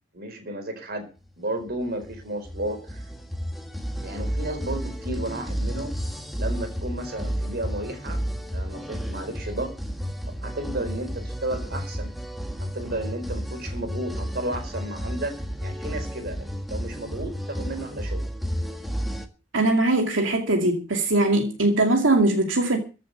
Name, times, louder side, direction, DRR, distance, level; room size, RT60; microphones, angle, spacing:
voice 1, 0.1-1.1 1.4-3.0 4.0-6.0 6.4-8.2 8.5-9.7 10.4-12.1 12.6-18.2, right 1 dB, 55° right, 4.4 m, -33 dB
sound 1, 1.6-19.3, equal, ahead, 1.8 m, -32 dB
voice 2, 19.5-22.8, right 2 dB, 85° right, 2.4 m, -21 dB
14.5 x 7.6 x 8.0 m
head